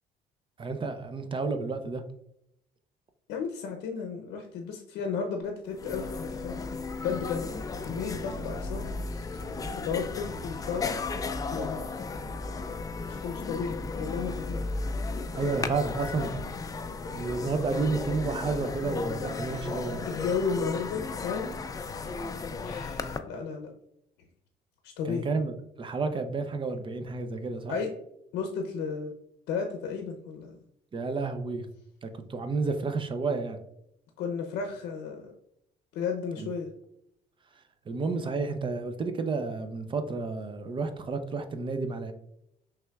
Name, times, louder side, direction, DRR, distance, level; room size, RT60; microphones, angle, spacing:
voice 1, 0.6-2.0 15.3-16.3 17.1-20.0 25.1-27.8 30.9-31.7 32.0-33.6 36.4-36.5 37.9-42.1, right 4 dB, 30° right, 8 dB, 0.5 m, -31 dB
voice 2, 3.3-6.6 7.0-9.4 9.8-10.9 11.5-11.9 13.1-14.6 20.1-21.5 22.6-23.7 24.8-25.3 27.7-27.9 28.3-29.1 29.5-30.6 34.2-35.3 35.9-36.7, left 5 dB, 85° left, 3 dB, 0.6 m, -33 dB
sound 1, 5.4-5.5 5.7-23.2, left 3 dB, 20° left, 0.4 m, -35 dB
5.7 x 3.4 x 2.3 m, 0.77 s
cardioid pair, 110°, 17 cm